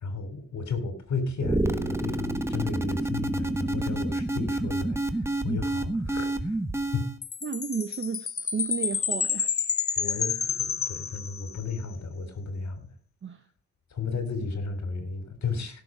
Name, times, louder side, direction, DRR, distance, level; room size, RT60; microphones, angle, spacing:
voice 1, 0.0-6.6 6.9-7.0 10.0-12.9 13.9-15.8, left 4 dB, 70° left, 3.4 m, -33 dB
sound 1, 1.4-7.2, right 1 dB, 10° right, 1.3 m, -29 dB
Chime, 7.2-11.7, left 6 dB, 50° left, 1.1 m, -29 dB
voice 2, 7.4-9.5 13.2-13.4, right 6 dB, 40° right, 0.8 m, -32 dB
16.5 x 6.9 x 5.0 m
cardioid pair, 75°, 29 cm